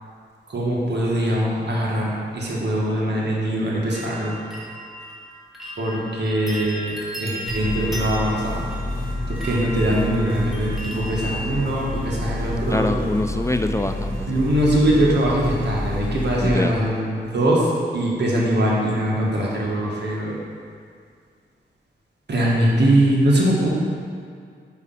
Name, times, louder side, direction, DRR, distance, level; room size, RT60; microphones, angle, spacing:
voice 1, 0.5-4.3 5.8-8.6 9.3-13.0 14.3-20.4 22.3-23.7, right 1 dB, 60° right, -4 dB, 1.5 m, -22 dB
sound 1, 3.9-12.9 13.8-14.3 14.6-15.1 15.4-15.5, equal, ahead, 1.4 m, -36 dB
sound 2, 7.5-16.5, left 1 dB, 90° right, 1.2 m, -29 dB
voice 2, 12.7-14.4 16.4-16.7, left 2 dB, 15° left, 7 dB, 0.3 m, -24 dB
4.9 x 4.8 x 5.7 m, 2.2 s
cardioid pair, 65°, 20 cm